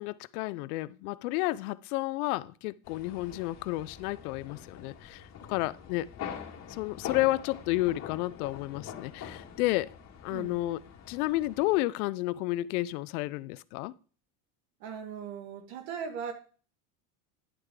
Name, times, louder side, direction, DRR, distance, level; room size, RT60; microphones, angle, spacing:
voice 1, 0.0-6.1 6.7-9.9 10.2-10.8 11.1-13.9, left 18 dB, 75° left, 19 dB, 0.6 m, -31 dB
sound 1, 2.8-11.8, left 8 dB, 35° left, 2.0 m, -44 dB
voice 2, 10.3-10.6 14.8-16.3, right 7 dB, 70° right, 6 dB, 2.1 m, -39 dB
10.5 x 6.5 x 3.7 m, 0.40 s
supercardioid pair, 125°, 44 cm